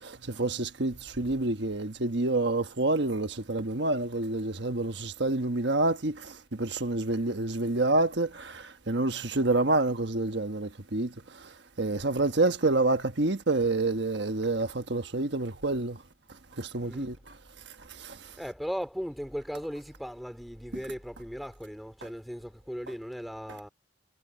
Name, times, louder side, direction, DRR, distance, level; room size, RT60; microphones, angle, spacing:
voice 1, 0.0-16.0 16.3-17.4 17.6-18.4, right 2 dB, 65° right, 1.3 m, -28 dB
voice 2, 16.8-17.1 18.4-23.7, equal, ahead, 3.1 m, -37 dB
head